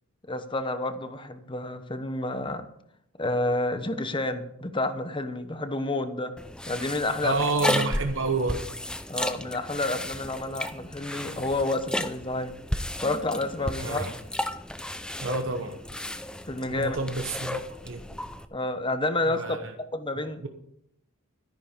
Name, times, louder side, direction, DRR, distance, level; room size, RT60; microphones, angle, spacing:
voice 1, 0.3-2.6 3.2-6.3 6.7-7.3 9.1-12.5 13.0-14.0 16.5-17.0 18.5-19.6 19.9-20.4, left 2 dB, 20° left, 9 dB, 1.0 m, -29 dB
sound 1, 6.4-18.4, left 1 dB, 5° left, 0.5 m, -34 dB
voice 2, 7.2-8.6 13.8-14.1 15.2-15.8 16.7-18.0 19.3-19.7 20.4-20.5, right 3 dB, 60° right, 5 dB, 1.1 m, -29 dB
13.0 x 10.5 x 5.2 m, 0.75 s
head